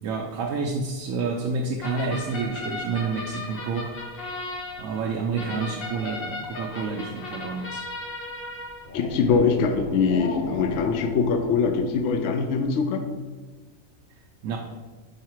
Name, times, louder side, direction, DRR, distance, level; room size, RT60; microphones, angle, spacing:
voice 1, 0.0-3.9 4.8-7.8 14.4-14.6, right 4 dB, 75° right, 1 dB, 1.0 m, -29 dB
sound 1, 1.8-12.1, left 2 dB, 45° left, 1.2 m, -36 dB
voice 2, 8.9-13.1, left 5 dB, 65° left, 5 dB, 0.9 m, -23 dB
5.7 x 4.6 x 4.5 m, 1.3 s
omnidirectional pair, 1.5 m